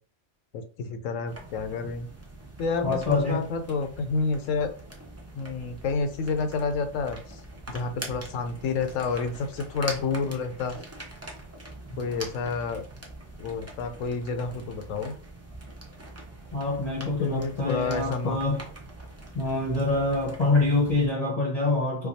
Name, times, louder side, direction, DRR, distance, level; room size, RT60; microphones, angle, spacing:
voice 1, 0.5-2.1 2.6-4.7 5.3-7.4 7.7-10.8 12.0-12.8 13.4-15.1 17.0-18.4, left 4 dB, 90° left, 1.0 m, -29 dB
sound 1, 1.3-21.1, right 2 dB, 20° right, 0.5 m, -43 dB
voice 2, 2.8-3.4 16.5-18.6 19.3-22.1, left 2 dB, 35° left, 0.8 m, -25 dB
4.6 x 2.3 x 2.7 m
omnidirectional pair, 1.3 m